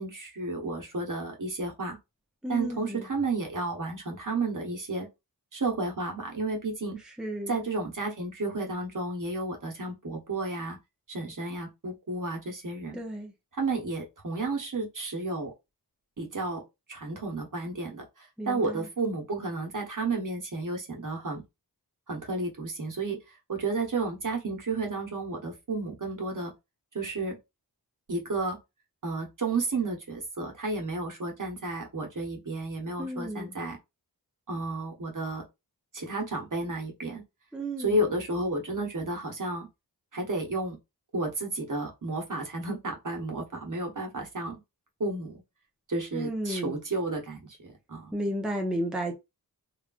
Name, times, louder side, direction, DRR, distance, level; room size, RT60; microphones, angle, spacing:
voice 1, 0.0-2.0 2.5-5.1 5.5-7.0 7.5-10.8 11.1-13.0 13.5-15.5 16.2-16.6 16.9-21.4 22.1-26.5 26.9-27.4 28.1-28.6 29.0-33.8 34.5-35.4 35.9-37.2 37.8-39.7 40.1-40.8 41.1-44.6 45.0-45.4 45.9-48.2, right 2 dB, 50° right, 1.1 m, -32 dB
voice 2, 2.4-3.0 7.2-7.5 12.9-13.3 18.4-18.8 33.0-33.5 37.5-38.0 46.1-46.7 48.1-49.2, equal, ahead, 0.7 m, -33 dB
3.1 x 2.3 x 2.4 m
wide cardioid pair, 55°, 40 cm